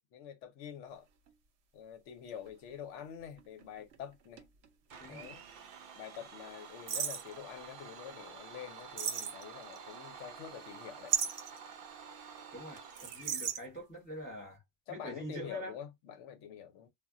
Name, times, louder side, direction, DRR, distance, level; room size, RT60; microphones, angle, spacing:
voice 1, 0.1-1.1 1.7-4.4 5.1-5.4 6.0-11.2 14.9-16.9, left 9 dB, 80° left, 0.9 m, -46 dB
sound 1, 1.3-1.4 2.3-5.0 5.2-5.3 6.9-7.3 9.0-9.8 11.1-11.6 13.0-13.6, right 8 dB, 90° right, 0.9 m, -35 dB
Domestic sounds home sounds, 4.9-13.6, right 6 dB, 60° right, 0.7 m, -50 dB
voice 2, 5.0-5.3 12.5-14.6 14.9-15.7, right 1 dB, 10° left, 0.8 m, -44 dB
2.3 x 2.1 x 3.6 m
omnidirectional pair, 1.2 m